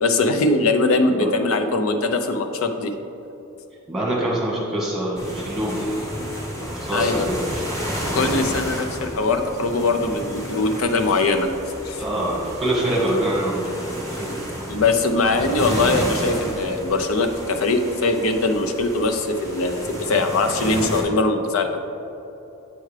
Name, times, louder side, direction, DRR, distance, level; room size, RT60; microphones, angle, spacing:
voice 1, 0.0-2.9 6.9-7.3 8.1-11.5 11.8-12.0 14.7-21.8, left 3 dB, 80° left, 6 dB, 0.5 m, -21 dB
voice 2, 3.9-5.9 6.7-7.7 12.0-13.8 14.2-14.3, right 1 dB, ahead, -6 dB, 1.4 m, -24 dB
sound 1, 5.2-21.0, equal, 15° left, 1.3 m, -31 dB
8.5 x 4.6 x 3.3 m, 2.9 s
head